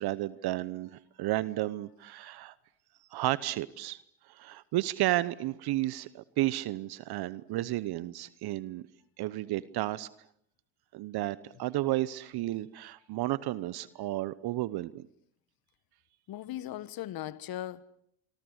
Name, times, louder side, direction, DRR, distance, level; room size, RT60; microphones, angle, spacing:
voice 1, 0.0-2.5 3.1-4.0 4.3-8.8 9.2-10.1 10.9-15.0, right 16 dB, 65° right, 1.0 m, -32 dB
voice 2, 16.3-17.8, left 13 dB, 60° left, 1.3 m, -39 dB
26.0 x 25.5 x 8.1 m
hypercardioid pair, 65°, 42 cm